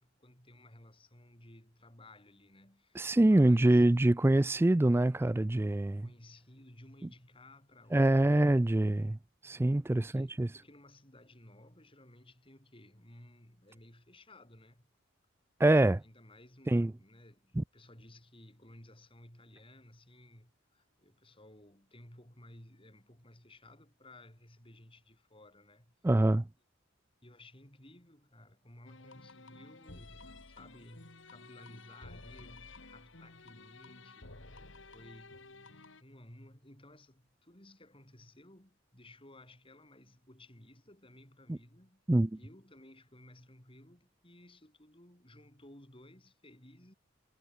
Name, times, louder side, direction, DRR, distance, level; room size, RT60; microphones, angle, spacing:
voice 1, 0.0-3.8 6.0-8.7 10.0-14.9 16.0-26.0 27.2-42.0 42.4-46.9, left 1 dB, 25° left, 6.2 m, -57 dB
voice 2, 3.0-6.1 7.9-9.2 9.4-10.5 15.6-16.0 16.7-16.9 17.6-17.7 26.0-26.5 41.5-41.6 42.1-42.4, right 1 dB, 10° right, 0.3 m, -25 dB
sound 1, 28.9-36.0, left 3 dB, 70° left, 3.2 m, -53 dB
head